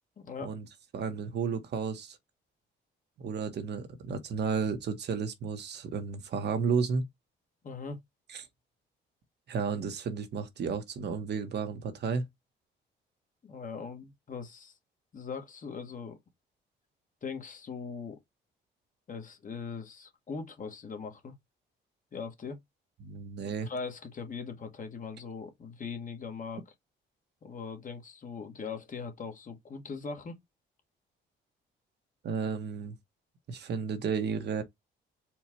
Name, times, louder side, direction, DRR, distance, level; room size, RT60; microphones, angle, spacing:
voice 1, 0.2-0.5 7.6-8.0 13.4-14.7 15.1-16.2 17.2-18.2 19.1-21.3 22.1-22.6 23.6-26.6 27.4-30.4, left 5 dB, 40° left, 1.4 m, -40 dB
voice 2, 0.9-2.2 3.2-7.0 8.3-8.5 9.5-12.2 23.0-23.7 32.2-33.0 33.5-34.6, right 5 dB, 60° right, 1.0 m, -32 dB
4.4 x 2.4 x 4.2 m
cardioid pair, 90°, 20 cm